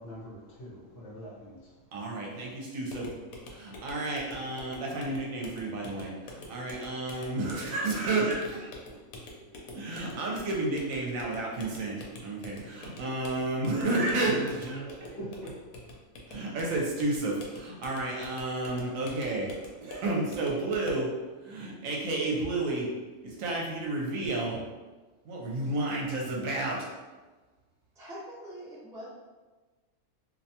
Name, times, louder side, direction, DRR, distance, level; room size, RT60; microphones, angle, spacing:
voice 1, 0.0-1.8 14.3-16.0 18.7-18.9, right 1 dB, 50° left, -8 dB, 0.9 m, -43 dB
voice 2, 1.9-2.5 2.7-3.1 3.5-8.7 9.7-14.8 16.3-21.1 21.4-22.9 23.2-24.6 25.2-26.8, right 2 dB, 75° right, -2 dB, 1.0 m, -31 dB
sound 1, 2.9-21.1, left 2 dB, 80° left, 1.0 m, -47 dB
voice 3, 27.9-29.1, equal, 5° right, -9 dB, 0.4 m, -43 dB
2.5 x 2.2 x 2.7 m, 1.3 s
omnidirectional pair, 1.5 m